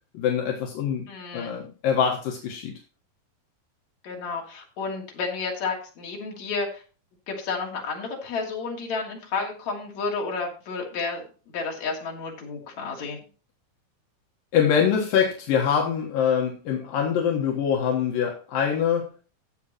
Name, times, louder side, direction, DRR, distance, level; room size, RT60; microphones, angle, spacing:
voice 1, 0.1-1.1 1.3-2.7 14.5-19.1, left 8 dB, 75° left, 0 dB, 3.0 m, -24 dB
voice 2, 1.1-1.6 4.0-6.8 7.3-13.2, left 4 dB, 50° left, -1 dB, 3.8 m, -31 dB
15.0 x 8.6 x 3.0 m, 0.36 s
omnidirectional pair, 4.2 m